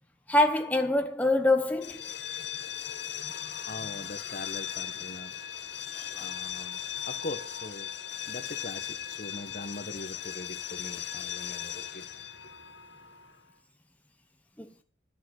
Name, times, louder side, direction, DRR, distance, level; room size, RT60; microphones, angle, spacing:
voice 1, 0.3-2.1 3.2-3.3 5.9-6.3 14.6-14.7, left 2 dB, 10° left, 0.9 m, -25 dB
sound 1, 1.7-13.4, left 9 dB, 65° left, 1.1 m, -38 dB
voice 2, 3.6-5.3 6.2-6.8 7.0-7.9 8.3-12.1, left 2 dB, 45° left, 1.2 m, -41 dB
11.0 x 7.1 x 6.5 m
head